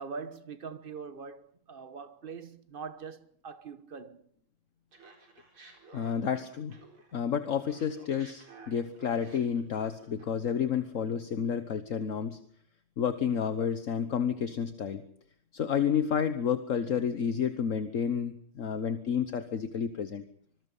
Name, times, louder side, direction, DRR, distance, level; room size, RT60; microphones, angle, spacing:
voice 1, 0.0-4.3, right 5 dB, 30° right, 1.1 m, -43 dB
Laughter, 4.9-7.2 7.5-10.7, right 3 dB, 80° right, 5.2 m, -54 dB
voice 2, 5.9-6.8 7.1-12.4 13.0-15.0 15.5-20.2, left 7 dB, 45° left, 1.2 m, -30 dB
26.0 x 21.0 x 5.5 m
omnidirectional pair, 2.3 m